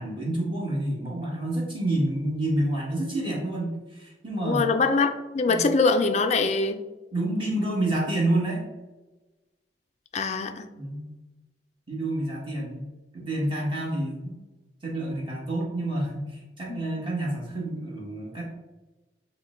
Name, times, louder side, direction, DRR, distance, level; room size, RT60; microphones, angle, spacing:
voice 1, 0.0-4.7 5.5-5.6 7.1-8.6 10.7-11.1 11.9-12.9 13.1-14.3 14.8-18.4, right 1 dB, 30° right, -4 dB, 1.4 m, -28 dB
voice 2, 4.4-6.8 10.1-10.7 16.7-16.8, left 4 dB, 40° left, 8 dB, 0.4 m, -23 dB
5.7 x 2.2 x 4.3 m, 1.1 s
head